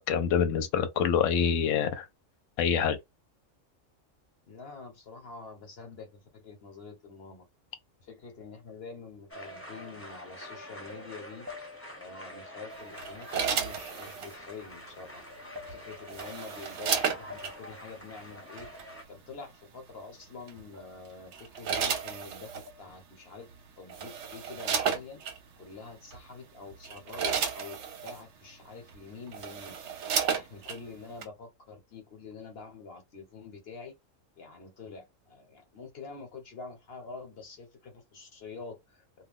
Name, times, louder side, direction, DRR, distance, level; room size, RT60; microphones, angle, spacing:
voice 1, 0.0-2.1 2.6-3.0, left 7 dB, 75° left, 0.9 m, -26 dB
voice 2, 4.5-7.5 8.0-11.5 12.0-15.3 15.7-18.7 19.1-23.5 23.8-25.2 25.6-29.8 30.2-33.9 34.4-39.0, left 4 dB, 55° left, 1.1 m, -46 dB
sound 1, 8.4-8.8 10.0-10.1 11.5-12.2 13.8-14.0 15.5-16.2 17.3-18.0 20.8-21.3 22.7-23.1 24.5-24.9, left 5 dB, 25° right, 0.4 m, -49 dB
sound 2, 9.3-19.0, equal, 10° left, 0.8 m, -46 dB
sound 3, 13.0-14.4 15.7-17.5 18.6-18.8 20.5-20.8 21.3-22.7 23.5-23.6 23.9-25.4 26.1-26.3 26.7-28.2 28.9-29.0 29.3-30.8 31.2-31.3, right 7 dB, 65° right, 1.0 m, -32 dB
2.4 x 2.2 x 3.5 m
omnidirectional pair, 1.3 m